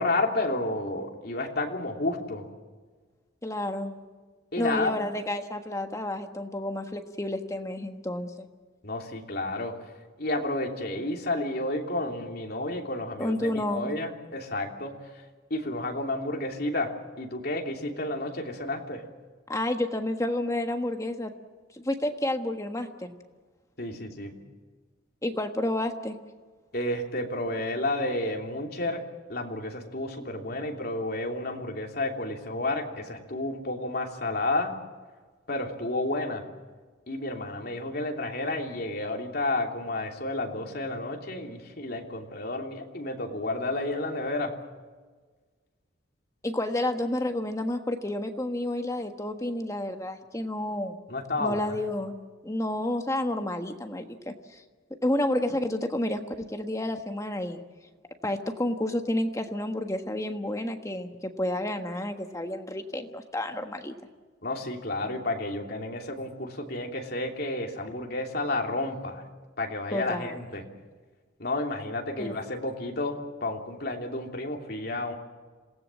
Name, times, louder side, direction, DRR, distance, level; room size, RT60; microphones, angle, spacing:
voice 1, 0.0-2.5 4.5-5.0 8.8-9.8 10.2-15.0 15.5-19.0 23.8-24.4 26.7-29.0 29.3-34.7 35.5-36.4 37.1-44.5 51.1-51.8 64.4-69.2 69.6-70.6 71.4-75.1, left 2 dB, 50° left, 2 dB, 3.0 m, -31 dB
voice 2, 3.4-3.9 4.5-8.5 13.2-13.9 19.5-21.3 21.7-23.1 25.2-26.2 46.4-51.0 51.4-52.1 52.4-54.6 55.0-57.6 58.2-63.9 69.9-70.4 72.2-72.4, left 1 dB, 15° left, 6 dB, 1.4 m, -30 dB
27.0 x 17.5 x 7.6 m, 1.4 s
head